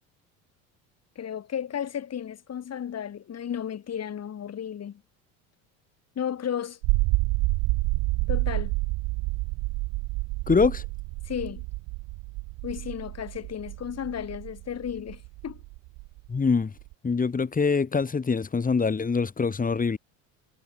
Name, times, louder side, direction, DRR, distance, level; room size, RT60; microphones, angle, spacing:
voice 1, 1.1-5.0 6.1-6.8 8.3-8.7 11.2-11.6 12.6-15.6, left 9 dB, 40° left, 6.5 m, -33 dB
sound 1, 6.8-16.9, right 25 dB, 70° right, 4.1 m, -29 dB
voice 2, 10.5-10.8 16.3-16.7 17.0-20.0, left 5 dB, 20° left, 2.7 m, -24 dB
supercardioid pair, 90°, 38 cm